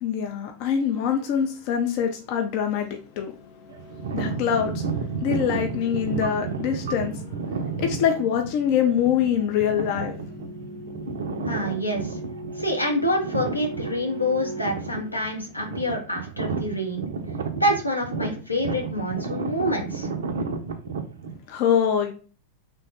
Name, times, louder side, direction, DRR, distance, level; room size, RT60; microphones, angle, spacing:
voice 1, 0.0-3.3 4.1-4.8 5.2-7.3 7.8-10.1 21.5-22.1, left 8 dB, 45° left, 0.4 m, -24 dB
sound 1, 3.1-15.8, equal, 15° left, 0.7 m, -41 dB
sound 2, 3.7-21.4, right 4 dB, 65° right, 0.4 m, -32 dB
voice 2, 11.5-12.2 12.6-17.1 17.6-20.1, equal, 85° left, 0.7 m, -27 dB
3.2 x 2.1 x 2.7 m
figure-of-eight pair, 90°, 0 cm